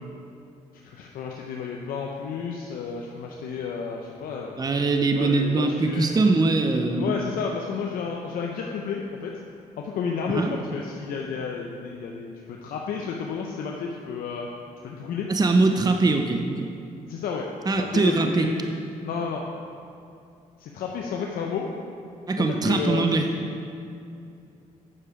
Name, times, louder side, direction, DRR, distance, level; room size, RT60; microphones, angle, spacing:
voice 1, 0.8-4.6 5.1-6.3 7.0-9.4 9.8-14.5 14.8-15.5 17.1-18.7 19.0-19.4 20.6-21.7 22.4-23.4, left 5 dB, 75° left, 0 dB, 0.7 m, -31 dB
voice 2, 4.6-7.1 10.3-10.6 15.3-16.7 17.7-18.5 22.3-23.3, right 3 dB, 25° right, 5 dB, 0.7 m, -22 dB
8.8 x 6.7 x 4.9 m, 2.5 s
supercardioid pair, 65°, 15 cm